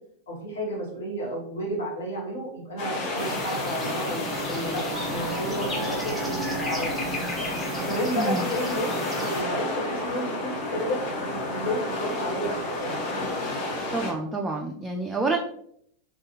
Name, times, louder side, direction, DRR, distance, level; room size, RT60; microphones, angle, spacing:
voice 1, 0.3-4.8 5.1-7.0 7.8-12.5 12.8-13.0, equal, 65° left, -2 dB, 1.1 m, -32 dB
sound 1, 2.8-14.1, left 2 dB, 45° left, 0.7 m, -31 dB
sound 2, 3.2-9.4, equal, 10° left, 0.8 m, -34 dB
sound 3, 4.1-9.1, right 1 dB, 80° right, 0.5 m, -37 dB
voice 2, 8.2-8.5 13.9-15.4, right 3 dB, 10° right, 0 dB, 0.3 m, -28 dB
2.4 x 2.2 x 3.0 m, 0.67 s
figure-of-eight pair, 90°, 0 cm